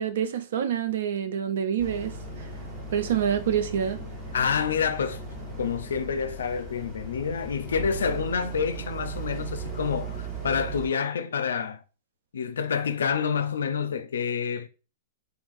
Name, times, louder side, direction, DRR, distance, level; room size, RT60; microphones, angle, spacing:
voice 1, 0.0-2.5 2.9-4.0, right 9 dB, 75° right, 0.3 m, -27 dB
Boat Water vehicle, 1.8-10.9, right 3 dB, 15° right, 1.2 m, -37 dB
voice 2, 4.3-5.2 5.6-11.8 12.3-14.7, left 6 dB, 90° left, 0.4 m, -28 dB
3.6 x 2.3 x 2.5 m
hypercardioid pair, 135°, 0 cm